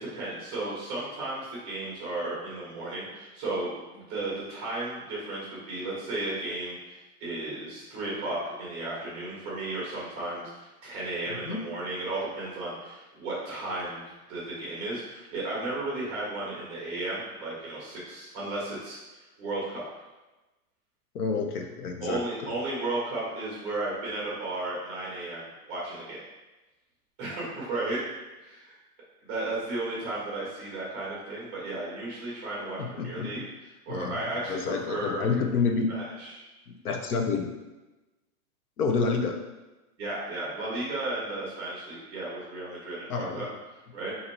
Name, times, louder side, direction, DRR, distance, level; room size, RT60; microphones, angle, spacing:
voice 1, 0.0-14.0 14.3-20.0 22.0-26.2 27.2-28.0 28.4-28.7 29.3-33.4 33.9-35.3 35.9-36.4 40.0-43.5 43.9-44.1, right 2 dB, 15° right, -6 dB, 0.8 m, -34 dB
voice 2, 21.1-22.5 32.8-33.4 33.9-34.2 34.5-35.9 36.7-37.5 38.8-39.4 43.1-43.5, left 5 dB, 85° left, 3 dB, 0.9 m, -29 dB
4.0 x 2.9 x 4.4 m, 1.1 s
supercardioid pair, 180°, 44 cm